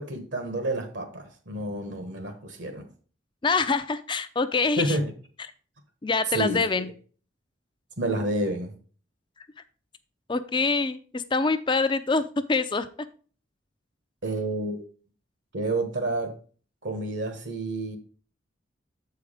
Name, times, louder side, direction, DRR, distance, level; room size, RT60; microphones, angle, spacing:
voice 1, 0.0-2.9 4.8-5.0 6.3-6.8 8.0-8.7 14.2-14.8 15.5-16.4 16.8-18.0, right 2 dB, 70° right, 6 dB, 1.2 m, -29 dB
voice 2, 3.4-5.0 6.0-6.9 10.3-12.9, left 4 dB, 25° left, 11 dB, 0.5 m, -25 dB
7.9 x 4.7 x 4.9 m, 0.41 s
head